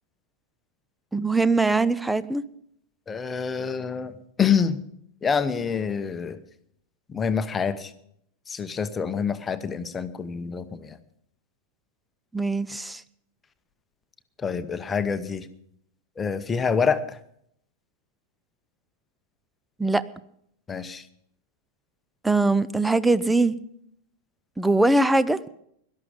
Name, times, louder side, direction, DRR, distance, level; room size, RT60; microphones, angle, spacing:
voice 1, 1.1-2.4 12.3-13.0 19.8-20.0 22.2-23.6 24.6-25.4, right 2 dB, 5° right, 17 dB, 0.6 m, -21 dB
voice 2, 3.1-4.8 5.2-6.4 7.1-7.9 8.5-11.0 14.4-15.5 16.2-17.2 20.7-21.0, left 6 dB, 20° left, 11 dB, 0.9 m, -26 dB
17.0 x 12.5 x 5.3 m, 0.71 s
figure-of-eight pair, 90°, 0 cm